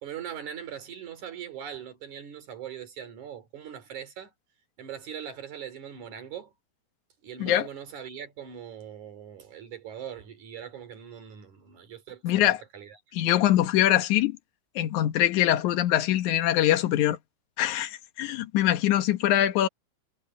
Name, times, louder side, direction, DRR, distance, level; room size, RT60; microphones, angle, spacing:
voice 1, 0.0-4.3 4.8-6.5 7.2-13.0, right 8 dB, 70° right, 4.1 m, -41 dB
voice 2, 12.2-12.6 13.1-14.4 14.8-17.2 17.6-19.7, left 13 dB, 75° left, 2.5 m, -23 dB
omnidirectional pair, 3.5 m